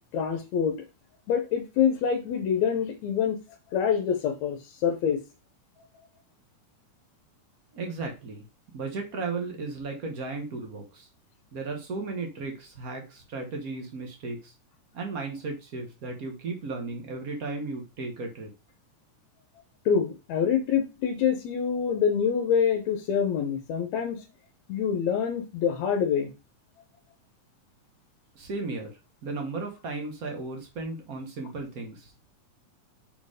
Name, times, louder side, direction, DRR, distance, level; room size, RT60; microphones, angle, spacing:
voice 1, 0.1-0.7 1.3-3.4 3.7-5.2 19.9-24.2 24.7-26.3, left 7 dB, 70° left, 4 dB, 1.9 m, -26 dB
voice 2, 7.7-8.4 8.7-11.1 11.5-14.5 14.9-18.5 28.3-32.3, right 3 dB, 85° right, 3 dB, 0.7 m, -35 dB
6.8 x 4.4 x 4.9 m, 0.29 s
omnidirectional pair, 3.7 m